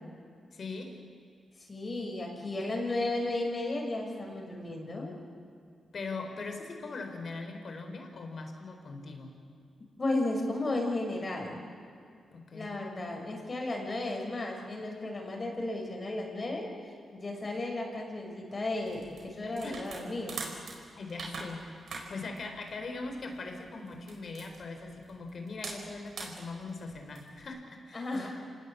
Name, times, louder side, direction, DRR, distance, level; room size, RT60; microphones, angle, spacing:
voice 1, 0.5-1.0 5.9-9.3 12.3-12.7 19.6-19.8 21.0-21.7 22.1-28.3, left 3 dB, 60° left, 5 dB, 4.3 m, -41 dB
voice 2, 1.7-5.1 10.0-11.6 12.5-16.7 17.1-20.4 27.9-28.3, left 2 dB, 35° left, 1 dB, 6.3 m, -34 dB
sound 1, 18.8-27.4, right 4 dB, 70° right, 4.8 m, -44 dB
27.5 x 19.0 x 8.4 m, 2.4 s
cardioid pair, 70°, 0 cm